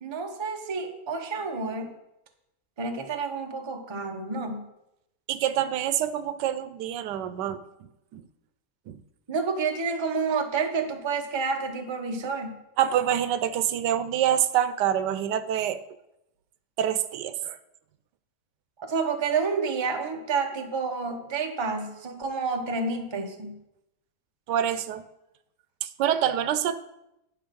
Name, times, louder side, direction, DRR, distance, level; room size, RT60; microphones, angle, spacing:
voice 1, 0.0-1.9 2.8-4.7 9.3-12.6 18.8-23.6, right 4 dB, 25° right, 4 dB, 0.5 m, -29 dB
voice 2, 5.3-7.6 8.1-8.2 8.9-9.0 12.8-15.8 16.8-17.6 24.5-25.0 25.8-26.8, right 10 dB, 85° right, 13 dB, 1.2 m, -26 dB
9.6 x 5.7 x 5.2 m, 0.87 s
omnidirectional pair, 1.8 m